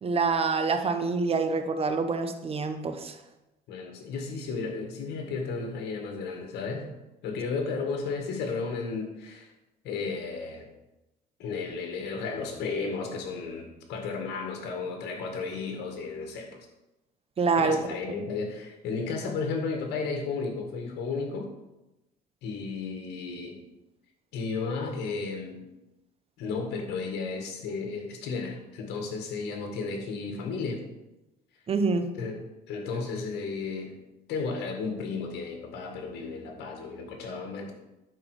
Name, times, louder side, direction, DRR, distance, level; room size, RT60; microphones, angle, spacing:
voice 1, 0.0-3.2 17.4-17.9 31.7-32.2, right 4 dB, 35° right, 8 dB, 1.0 m, -26 dB
voice 2, 3.7-6.9 7.2-9.5 9.8-10.7 11.4-16.6 17.6-21.5 22.4-23.6 24.3-25.7 26.4-30.8 32.2-32.4 32.7-34.0 34.3-37.7, left 4 dB, 80° left, 3 dB, 1.9 m, -33 dB
11.0 x 4.7 x 4.9 m, 0.97 s
cardioid pair, 110°, 17 cm